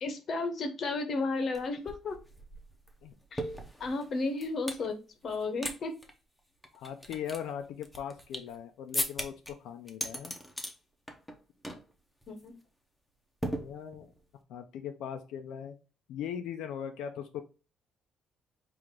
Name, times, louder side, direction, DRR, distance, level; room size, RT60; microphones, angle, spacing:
voice 1, 0.0-2.2 3.3-3.4 3.8-5.0 5.2-5.9 12.3-12.5, left 3 dB, 45° left, 7 dB, 0.8 m, -33 dB
sound 1, 1.5-1.6 1.9-4.9 5.3-5.8 6.0-6.1 6.6-8.6 8.9-9.5 9.9-10.7 11.1-11.4 11.6-11.9 12.2-12.4 13.4-14.2, equal, 5° left, 0.7 m, -37 dB
voice 2, 6.7-10.4 13.5-14.1 14.5-15.8 16.1-17.4, left 8 dB, 90° left, 5 dB, 0.5 m, -39 dB
4.8 x 2.5 x 3.6 m, 0.33 s
cardioid pair, 145°, 0 cm